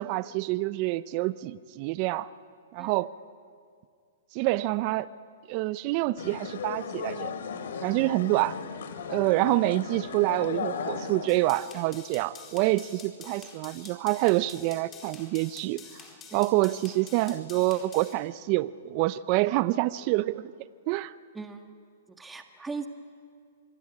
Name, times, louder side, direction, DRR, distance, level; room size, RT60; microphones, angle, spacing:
voice 1, 0.0-2.3 2.7-3.1 4.3-5.1 5.5-7.3 7.8-8.6 9.1-15.8 16.3-20.5 20.9-21.1, right 18 dB, 45° right, 17 dB, 0.7 m, -27 dB
sound 1, 6.2-11.6, left 6 dB, 75° left, 3.0 m, -36 dB
sound 2, 11.3-18.1, left 5 dB, 20° left, 4.6 m, -48 dB
voice 2, 21.3-21.7 22.1-22.9, right 4 dB, 10° right, 6 dB, 1.6 m, -39 dB
26.0 x 23.0 x 9.7 m, 2.2 s
hypercardioid pair, 130°, 0 cm